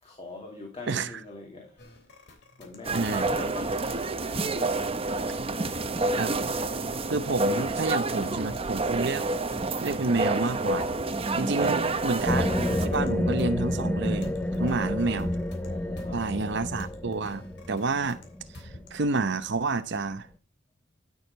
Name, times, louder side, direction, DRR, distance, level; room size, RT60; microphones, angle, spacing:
voice 1, 0.0-2.0 2.6-4.9 5.2-5.8 7.6-7.7 11.3-11.9 14.6-15.2 15.6-16.2, left 3 dB, 30° left, 2.5 m, -43 dB
voice 2, 0.9-1.2 2.9-3.2 6.2-6.4 7.1-9.3 9.8-10.9 11.4-14.3 14.6-15.3 16.1-18.2 18.6-20.3, right 3 dB, 65° right, 0.8 m, -29 dB
sound 1, 1.8-19.2, left 1 dB, 60° left, 3.3 m, -50 dB
sound 2, 2.8-12.9, right 2 dB, 30° right, 0.9 m, -28 dB
sound 3, 12.2-19.5, left 1 dB, 10° left, 0.6 m, -30 dB
12.0 x 6.5 x 5.3 m
head